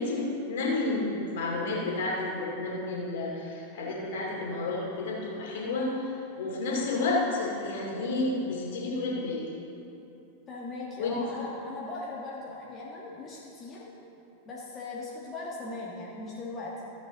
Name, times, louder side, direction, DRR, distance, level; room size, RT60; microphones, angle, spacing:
voice 1, 0.0-6.0 6.4-9.5 11.0-11.4, left 2 dB, 55° left, -3 dB, 2.4 m, -31 dB
voice 2, 10.5-13.9 14.4-16.9, left 2 dB, 25° left, -5 dB, 1.5 m, -39 dB
14.5 x 8.2 x 3.9 m, 2.8 s
figure-of-eight pair, 90°, 0 cm